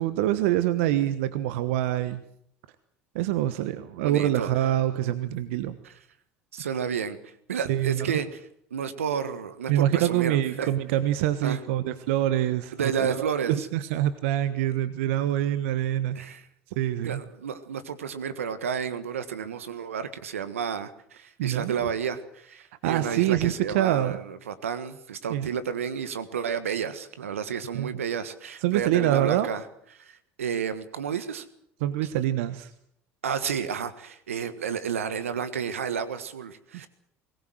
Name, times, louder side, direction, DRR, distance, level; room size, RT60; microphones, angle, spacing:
voice 1, 0.0-2.2 3.1-5.8 7.7-8.1 9.7-16.2 16.8-17.2 21.4-21.7 22.8-24.2 25.3-25.5 27.7-28.0 28.6-29.5 31.8-32.7, right 12 dB, 75° right, 12 dB, 1.2 m, -25 dB
voice 2, 4.0-4.5 5.8-5.9 6.5-8.4 8.7-10.7 11.4-11.6 12.8-13.7 16.1-16.5 17.0-29.6 29.9-31.4 33.2-36.9, right 7 dB, 90° right, 12 dB, 1.5 m, -31 dB
22.0 x 19.0 x 7.9 m, 0.70 s
hypercardioid pair, 70°, 7 cm